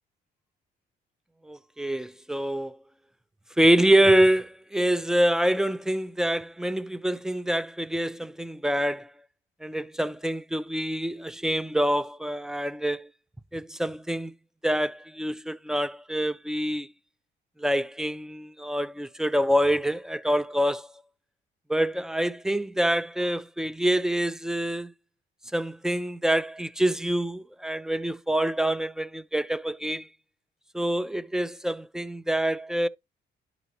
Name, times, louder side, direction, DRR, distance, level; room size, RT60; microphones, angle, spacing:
voice 1, 1.5-2.8 3.6-9.1 9.6-13.1 13.5-14.3 14.6-16.9 17.6-20.9 21.7-24.9 25.5-30.1 30.7-32.9, right 1 dB, 5° right, 0.3 m, -26 dB
11.0 x 4.0 x 2.8 m
cardioid pair, 90°, 20 cm